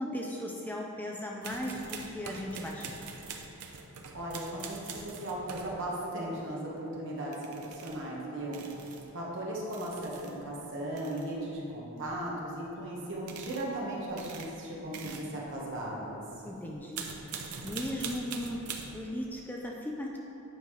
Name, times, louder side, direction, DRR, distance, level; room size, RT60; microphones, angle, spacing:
voice 1, 0.0-3.1 16.4-17.4 17.6-18.7 18.9-20.2, left 1 dB, 10° left, -1 dB, 0.4 m, -37 dB
sound 1, 1.4-5.8 7.3-8.1 8.5-9.1 9.7-10.4 10.8-11.4 12.0-12.4 13.1-13.7 14.0-16.3 16.7-19.2, right 5 dB, 80° right, 0.6 m, -43 dB
voice 2, 4.1-8.6 9.1-16.2, right 1 dB, 60° right, -4 dB, 1.3 m, -37 dB
9.1 x 5.1 x 3.2 m, 2.8 s
head